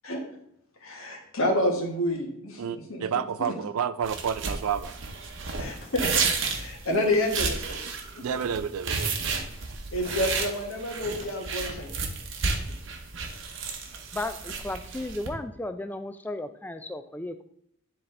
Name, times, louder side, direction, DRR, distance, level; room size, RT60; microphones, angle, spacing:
voice 1, 0.8-2.6 2.9-3.0 5.6-6.1 6.4-7.8 8.1-8.2 9.9-11.9, left 1 dB, 70° left, 1 dB, 1.4 m, -28 dB
voice 2, 2.6-5.0 8.2-9.3, right 7 dB, 85° right, 15 dB, 0.4 m, -30 dB
sound 1, 4.0-15.3, right 4 dB, 60° right, 0.9 m, -32 dB
Car / Slam, 5.4-5.9 6.4-6.8 7.1-7.8 8.4-8.6 9.0-9.5 10.0-10.5 10.9-11.3 11.6-12.0, left 1 dB, 50° left, 1.4 m, -45 dB
voice 3, 14.1-17.4, left 2 dB, 10° left, 9 dB, 0.3 m, -34 dB
9.9 x 4.1 x 3.3 m, 0.72 s
head